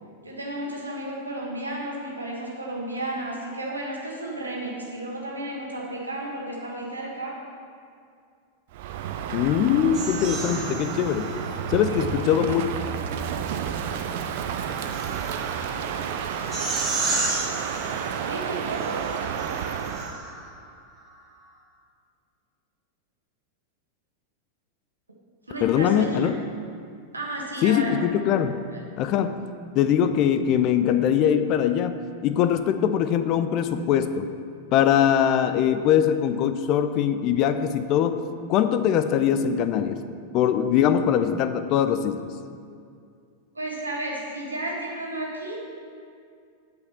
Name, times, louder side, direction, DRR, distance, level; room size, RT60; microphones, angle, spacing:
voice 1, 0.2-7.4 11.9-12.0 18.3-19.1 25.5-26.3 27.1-28.0 28.7-28.8 43.5-45.6, right 1 dB, 80° right, -2 dB, 1.6 m, -33 dB
Crow, 8.7-20.2, right 8 dB, 50° right, 0.5 m, -31 dB
voice 2, 9.3-11.3 11.7-12.7 25.6-26.4 27.6-28.6 29.0-29.4 29.7-34.3 34.7-38.2 38.5-40.0 40.3-42.3, left 9 dB, 40° left, 10 dB, 0.4 m, -22 dB
sound 1, 9.9-11.9 13.3-20.5, right 3 dB, 30° right, 1.9 m, -33 dB
8.2 x 5.3 x 6.8 m, 2.3 s
figure-of-eight pair, 90°, 0 cm